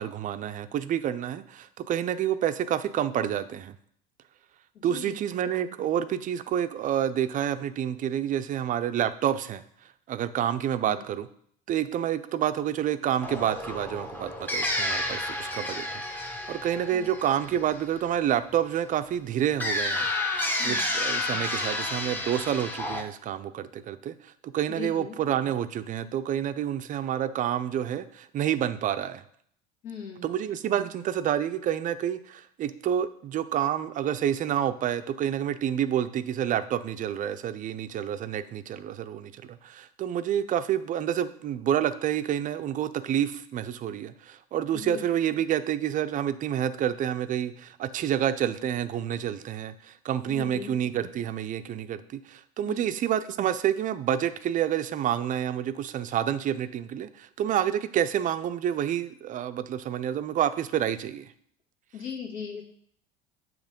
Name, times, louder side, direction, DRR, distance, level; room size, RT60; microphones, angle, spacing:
voice 1, 0.0-3.7 4.8-9.6 10.1-11.3 11.7-20.1 20.6-29.2 30.2-61.3, right 10 dB, 40° right, 12 dB, 0.5 m, -28 dB
voice 2, 4.7-5.2 10.8-11.1 16.9-17.1 20.6-20.8 24.7-25.1 29.8-30.3 44.7-45.1 50.3-50.7 52.7-52.9 61.9-62.6, left 6 dB, 65° left, 0 dB, 1.9 m, -39 dB
sound 1, 13.2-18.0 19.6-23.0, left 2 dB, 10° left, 0.9 m, -30 dB
7.3 x 3.1 x 5.1 m, 0.64 s
supercardioid pair, 100°, 21 cm